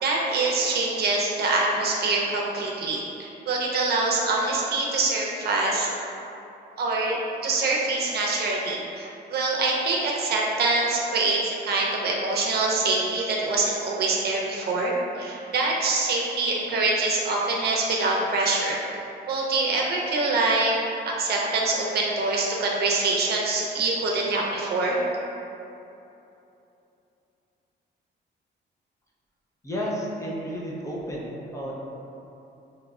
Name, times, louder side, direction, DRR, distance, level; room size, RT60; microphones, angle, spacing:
voice 1, 0.0-6.0 6.8-7.2 7.4-18.8 19.3-20.7 21.2-25.0, right 3 dB, 60° right, -2 dB, 0.6 m, -25 dB
voice 2, 29.6-31.7, equal, 15° left, -5 dB, 0.5 m, -32 dB
5.0 x 2.9 x 2.3 m, 2.8 s
cardioid pair, 160°, 19 cm